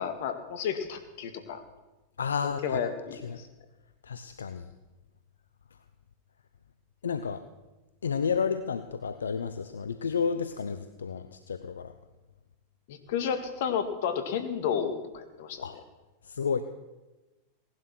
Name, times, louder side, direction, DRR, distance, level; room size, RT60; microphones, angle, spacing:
voice 1, 0.0-1.6 2.4-3.5 12.9-15.6, left 7 dB, 65° left, 9 dB, 2.0 m, -32 dB
voice 2, 2.2-2.8 3.1-3.4 4.0-4.7 7.0-7.4 8.0-11.9 15.6-15.7 16.2-16.6, left 6 dB, 85° left, 11 dB, 0.7 m, -31 dB
17.5 x 11.5 x 6.2 m, 1.1 s
hypercardioid pair, 100°, 0 cm